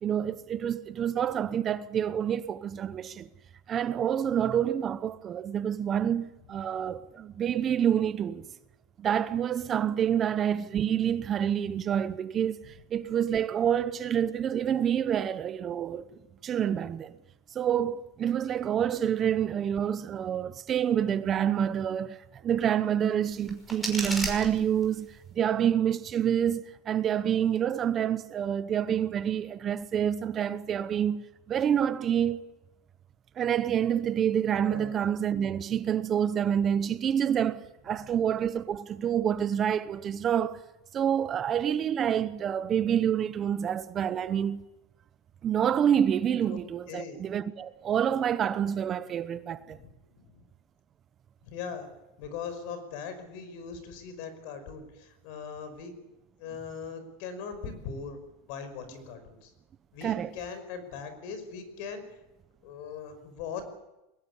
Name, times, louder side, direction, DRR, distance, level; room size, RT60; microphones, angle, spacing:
voice 1, 0.0-3.3 3.7-8.4 9.0-16.0 16.4-17.2 17.5-22.2 22.4-32.5 33.4-40.6 40.9-44.7 45.4-49.8 60.0-60.3, right 9 dB, 30° right, 0.9 m, -27 dB
sound 1, 23.2-25.2, equal, 5° left, 5.6 m, -36 dB
voice 2, 34.6-35.0 37.9-38.1 46.5-46.6 46.9-47.2 49.7-50.5 51.4-51.9 52.2-55.9 56.4-58.2 58.5-59.5 59.9-62.0 62.6-63.6, left 6 dB, 60° left, 5.4 m, -40 dB
22.0 x 18.5 x 8.5 m
supercardioid pair, 135°, 0 cm